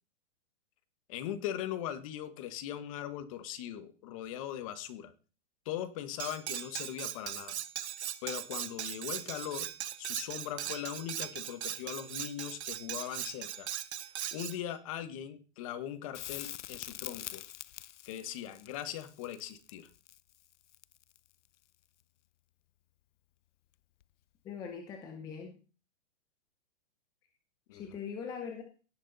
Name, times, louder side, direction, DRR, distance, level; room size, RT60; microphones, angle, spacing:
voice 1, 1.1-5.1 5.6-7.5 8.2-9.7 10.0-13.7 14.3-17.4 18.0-19.9 27.7-28.0, left 11 dB, 30° left, 11 dB, 1.2 m, -40 dB
Cutlery silverware, 6.2-14.6, right 10 dB, 65° right, 1.1 m, -39 dB
Crackle, 16.1-21.3 24.0-24.1, left 12 dB, 80° left, 0.7 m, -45 dB
voice 2, 24.4-25.6 27.7-28.6, left 6 dB, 10° left, 4 dB, 0.7 m, -41 dB
17.5 x 6.3 x 4.0 m, 0.35 s
hypercardioid pair, 165°, 35 cm